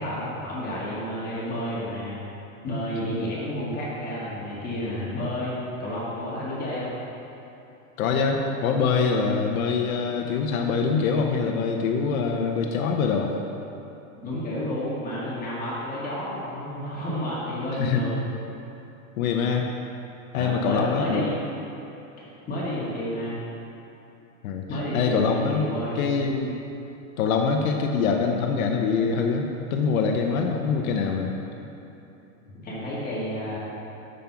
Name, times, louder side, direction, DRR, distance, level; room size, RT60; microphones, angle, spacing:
voice 1, 0.0-2.2 2.6-6.9 14.2-18.3 20.3-21.4 22.2-23.4 24.7-26.1 32.6-33.6, equal, 20° left, -7 dB, 2.0 m, -31 dB
voice 2, 8.0-13.4 17.7-18.1 19.2-19.7 20.3-21.3 24.4-24.7 24.9-25.7 26.0-26.6 27.2-31.3, left 5 dB, 70° left, 2 dB, 1.0 m, -24 dB
6.5 x 5.7 x 7.0 m, 3.0 s
supercardioid pair, 150°, 43 cm